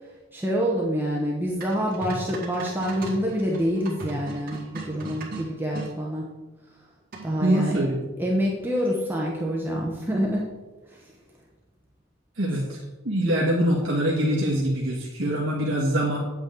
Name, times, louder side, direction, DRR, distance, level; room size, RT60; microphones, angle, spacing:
voice 1, 0.3-6.2 7.2-7.8 8.2-10.5 10.9-11.1, equal, 10° right, -3 dB, 0.9 m, -26 dB
sound 1, 1.6-5.9 7.1-7.5, right 2 dB, 40° right, 2.3 m, -37 dB
voice 2, 7.4-8.0 12.4-12.8 13.0-16.2, right 1 dB, 60° right, -4 dB, 1.5 m, -24 dB
8.9 x 8.2 x 3.8 m, 1.2 s
head